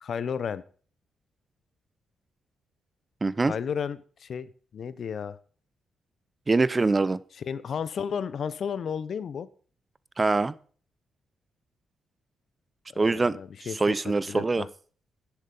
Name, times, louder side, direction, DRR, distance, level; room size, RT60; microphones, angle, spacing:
voice 1, 0.0-0.6 3.4-5.4 7.4-9.5 12.9-13.8 14.3-14.7, left 7 dB, 60° left, 17 dB, 0.8 m, -33 dB
voice 2, 3.2-3.5 6.5-7.2 10.2-10.5 13.0-13.4 13.7-14.7, right 3 dB, 30° right, 19 dB, 0.7 m, -23 dB
10.0 x 8.2 x 5.5 m, 0.43 s
supercardioid pair, 60°, 0 cm